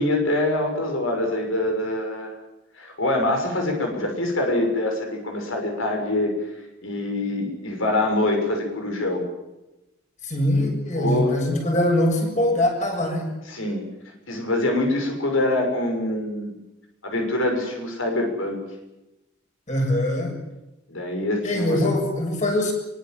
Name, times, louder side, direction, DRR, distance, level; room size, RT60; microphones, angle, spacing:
voice 1, 0.0-2.3 2.8-6.3 6.8-9.2 11.0-11.4 13.4-13.8 14.3-16.5 17.0-18.6 20.9-21.8, left 1 dB, 85° left, 3 dB, 6.4 m, -24 dB
voice 2, 10.2-13.3 19.7-20.4 21.4-22.7, left 1 dB, 35° left, 2 dB, 7.3 m, -22 dB
24.5 x 24.0 x 7.7 m, 0.97 s
head